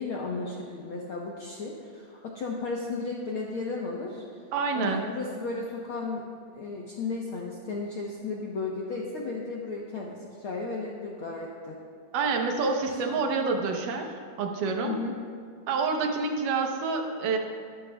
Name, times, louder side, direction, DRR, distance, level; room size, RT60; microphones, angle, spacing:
voice 1, 0.0-4.4 4.7-6.2 6.5-11.8 14.8-15.1, left 3 dB, 70° left, -3 dB, 1.3 m, -34 dB
voice 2, 4.5-5.1 12.1-14.1 14.4-15.0 15.7-17.4, right 4 dB, 80° right, 3 dB, 2.6 m, -27 dB
22.5 x 11.5 x 2.3 m, 2.1 s
omnidirectional pair, 3.7 m